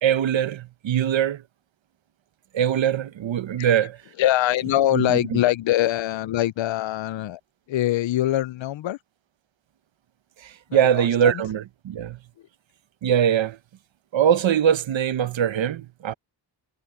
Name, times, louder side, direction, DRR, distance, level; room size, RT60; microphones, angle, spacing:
voice 1, 0.0-1.4 2.5-4.0 4.9-5.4 10.4-12.2 13.0-13.6 14.1-16.1, right 9 dB, 80° right, 0.8 m, -22 dB
voice 2, 3.6-7.4 7.7-9.0 10.7-11.4, left 13 dB, 80° left, 0.5 m, -24 dB
wide cardioid pair, 135°, 45 cm